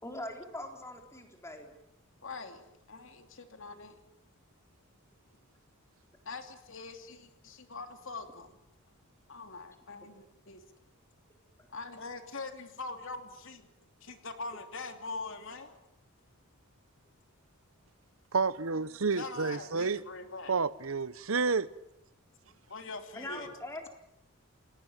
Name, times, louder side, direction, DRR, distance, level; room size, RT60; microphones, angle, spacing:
voice 1, 0.0-1.7 23.2-23.9, left 1 dB, 15° left, 4.1 m, -42 dB
voice 2, 2.2-4.0 6.2-8.5 9.3-10.6 11.7-13.7 14.0-15.8 19.1-20.5 22.7-23.5, left 3 dB, 65° left, 3.0 m, -43 dB
voice 3, 18.3-20.0 20.5-21.7, right 4 dB, 80° right, 0.9 m, -30 dB
29.5 x 18.0 x 9.0 m
head